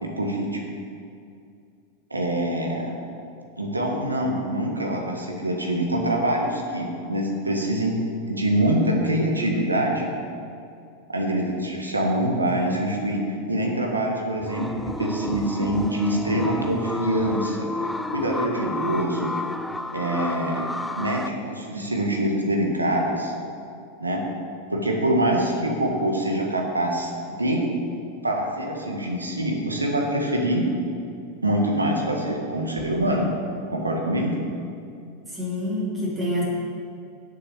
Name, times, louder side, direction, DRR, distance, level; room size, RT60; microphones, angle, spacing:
voice 1, 0.0-0.6 2.1-2.9 3.6-8.0 8.3-10.1 11.1-13.2 13.5-17.7 18.1-19.3 19.9-23.3 24.0-24.2 24.7-27.6 28.2-30.6 31.4-33.3 33.7-34.4, right 1 dB, 80° right, 0 dB, 1.6 m, -25 dB
sound 1, 14.4-21.3, left 2 dB, 5° left, 0.4 m, -31 dB
voice 2, 35.3-36.4, left 1 dB, 10° right, -7 dB, 2.8 m, -27 dB
7.7 x 6.8 x 7.1 m, 2.4 s
figure-of-eight pair, 90°, 0 cm